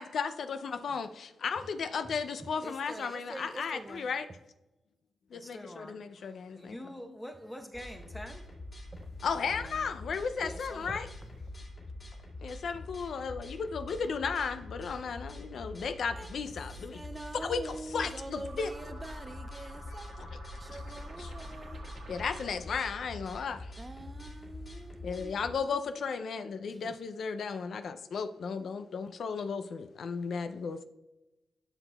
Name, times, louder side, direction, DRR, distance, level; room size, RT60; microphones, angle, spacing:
voice 1, 0.0-4.3 5.3-6.8 9.2-11.1 12.4-17.0 17.4-18.7 20.2-20.4 20.7-20.8 21.2-21.3 22.1-23.7 25.0-30.9, left 5 dB, 65° left, 0.4 m, -35 dB
voice 2, 2.6-4.1 9.0-9.1 9.3-9.8 10.4-11.0 16.2-16.3 16.9-20.2 20.6-22.2 23.8-25.5 26.7-26.9, right 2 dB, 20° right, 0.3 m, -45 dB
voice 3, 5.3-8.5, equal, 10° left, 0.8 m, -45 dB
sound 1, 7.7-25.5, left 2 dB, 40° left, 2.4 m, -45 dB
sound 2, 18.4-22.8, right 1 dB, 55° right, 1.5 m, -48 dB
12.0 x 6.0 x 2.3 m
cardioid pair, 95°, 0 cm